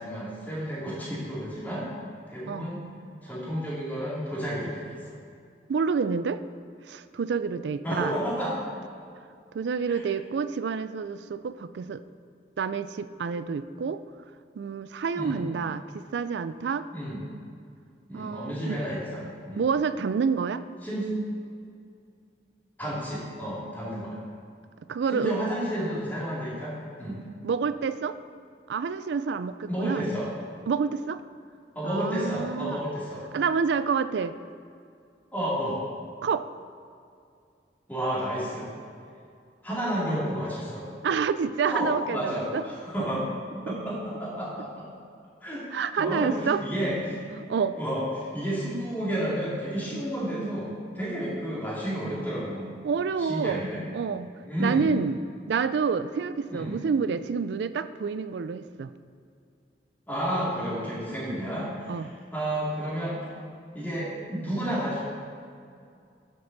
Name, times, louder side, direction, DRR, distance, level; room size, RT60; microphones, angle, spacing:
voice 1, 0.0-1.9 2.3-2.8 3.2-5.1 7.8-8.6 9.9-10.0 15.1-15.4 16.9-17.2 18.1-19.7 20.8-21.2 22.8-24.2 25.1-27.2 29.7-30.3 31.7-33.2 35.3-35.8 37.9-38.7 39.6-40.9 41.7-43.2 43.5-44.9 45.4-47.2 47.8-52.8 53.2-53.8 54.4-54.9 56.5-56.8 60.1-63.2 63.7-65.0, equal, 10° left, -8 dB, 2.3 m, -31 dB
voice 2, 5.7-6.4 6.9-8.2 9.5-12.0 12.6-14.0 14.6-16.9 18.1-18.8 19.6-20.6 24.9-25.4 27.4-28.2 28.7-30.1 30.7-31.2 31.8-32.8 33.3-34.4 36.2-36.5 41.0-42.6 43.7-43.8 45.7-46.6 47.5-47.8 52.8-53.7 53.9-54.3 54.6-55.2 55.5-58.9 61.9-62.1, right 5 dB, 75° right, 13 dB, 0.3 m, -28 dB
12.5 x 5.3 x 4.0 m, 2.4 s
head